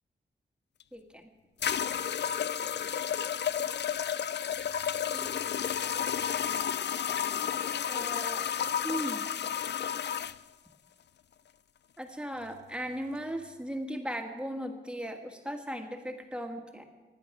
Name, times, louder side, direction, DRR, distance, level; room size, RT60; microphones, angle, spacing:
sound 1, 0.8-0.9 1.6-10.4, left 8 dB, 70° left, 0.4 m, -31 dB
voice 1, 0.9-1.3 5.1-5.8 7.9-8.4 8.8-9.3 12.0-16.8, equal, 5° right, 4 dB, 1.5 m, -38 dB
24.0 x 10.0 x 5.9 m, 1.3 s
wide cardioid pair, 160°, 18 cm